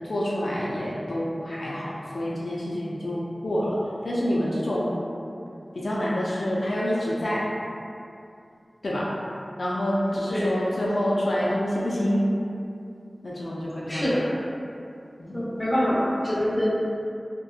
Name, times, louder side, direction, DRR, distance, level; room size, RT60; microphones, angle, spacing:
voice 1, 0.0-3.8 4.0-5.0 5.7-7.4 8.8-9.1 9.6-12.2 13.2-14.2 15.2-15.4, equal, 80° left, -6 dB, 0.3 m, -27 dB
voice 2, 10.1-10.5 13.9-14.3 15.3-16.7, equal, 15° left, -10 dB, 0.8 m, -25 dB
2.7 x 2.1 x 2.3 m, 2.5 s
wide cardioid pair, 70°, 0 cm